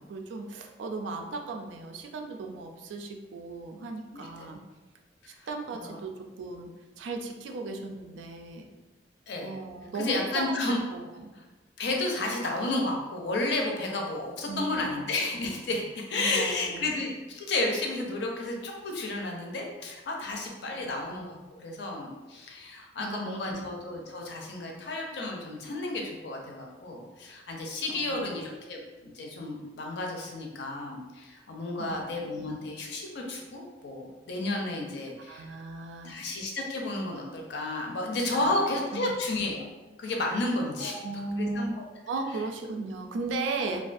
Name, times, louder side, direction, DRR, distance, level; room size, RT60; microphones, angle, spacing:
voice 1, 0.0-4.6 5.5-6.7 7.0-8.7 9.4-11.3 14.5-15.0 16.1-16.9 20.7-21.1 23.0-23.6 27.9-28.4 31.8-32.6 35.3-36.2 38.3-39.1 40.8-41.8 42.1-43.8, right 3 dB, 85° right, 4 dB, 0.3 m, -36 dB
voice 2, 9.9-10.8 11.8-35.4 36.0-39.7 40.0-41.0 41.3-41.8, left 2 dB, 70° left, 0 dB, 0.5 m, -32 dB
2.4 x 2.2 x 2.5 m, 1.2 s
head